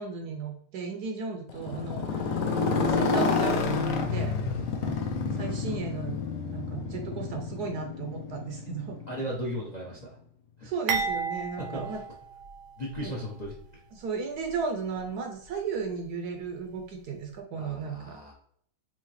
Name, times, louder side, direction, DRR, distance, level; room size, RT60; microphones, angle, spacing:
voice 1, 0.0-2.3 2.7-5.0 5.3-6.2 6.5-9.0 10.6-12.0 13.0-13.2 13.9-18.2, right 5 dB, 70° right, 3 dB, 1.0 m, -35 dB
Motorcycle, 1.5-9.5, left 4 dB, 85° left, 0.7 m, -29 dB
voice 2, 9.1-10.2 10.6-10.7 11.6-12.0 12.8-13.5 17.5-18.3, equal, 45° left, -3 dB, 0.5 m, -36 dB
sound 1, 10.9-13.0 13.4-13.6 14.4-14.6, right 5 dB, 85° right, 1.5 m, -33 dB
4.8 x 2.8 x 3.1 m, 0.64 s
omnidirectional pair, 2.0 m